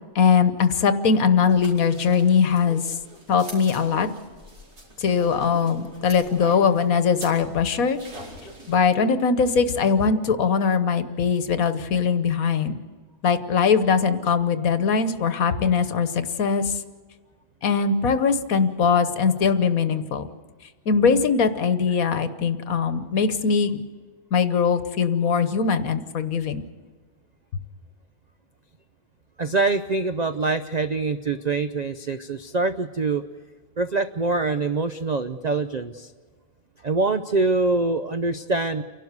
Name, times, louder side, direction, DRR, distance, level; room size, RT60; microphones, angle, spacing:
voice 1, 0.1-2.8 3.3-4.1 5.0-8.0 8.7-12.8 13.2-16.7 17.6-20.3 20.9-23.8 24.3-26.6, left 6 dB, 65° left, 11 dB, 1.4 m, -21 dB
sound 1, 1.5-8.8, right 1 dB, 85° right, 5.3 m, -44 dB
voice 2, 29.4-33.2 33.8-36.1 36.8-38.8, right 3 dB, 55° right, 9 dB, 0.4 m, -24 dB
29.5 x 12.0 x 8.1 m, 1.5 s
omnidirectional pair, 1.6 m